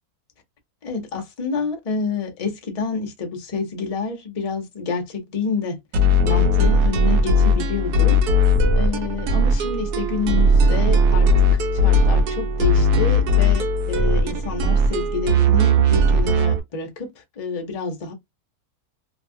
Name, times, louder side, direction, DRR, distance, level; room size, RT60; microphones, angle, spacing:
voice 1, 0.8-5.8 6.2-8.2 8.7-17.1 17.4-18.1, left 5 dB, 40° left, 0.5 m, -28 dB
sound 1, 5.9-16.6, equal, 90° right, 1.2 m, -18 dB
2.7 x 2.3 x 2.6 m
omnidirectional pair, 1.6 m